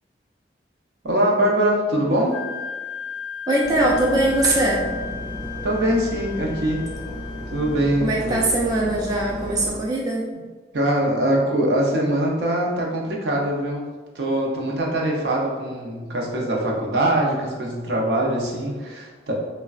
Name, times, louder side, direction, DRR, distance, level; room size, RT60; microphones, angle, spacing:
voice 1, 1.0-2.3 5.6-6.9 7.5-8.4 10.7-13.8 14.1-19.3, right 1 dB, 75° right, -2 dB, 0.6 m, -22 dB
Wind instrument woodwind instrument, 2.3-8.1, left 7 dB, 90° left, 0.5 m, -35 dB
voice 2, 3.5-4.9 8.0-10.3, right 1 dB, 20° right, -4 dB, 0.3 m, -21 dB
sound 1, 3.6-9.7, equal, 25° left, 0.7 m, -34 dB
3.4 x 2.1 x 2.3 m, 1.4 s
head